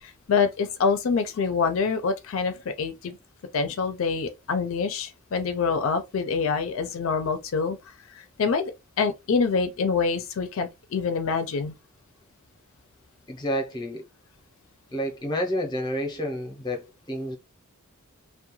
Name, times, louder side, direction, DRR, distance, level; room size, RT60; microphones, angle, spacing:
voice 1, 0.0-3.2 3.5-7.8 8.1-8.7 9.0-11.7, left 5 dB, 65° left, 0.4 m, -26 dB
voice 2, 13.3-14.0 14.9-17.4, equal, 20° left, 0.6 m, -29 dB
2.3 x 2.1 x 3.0 m
head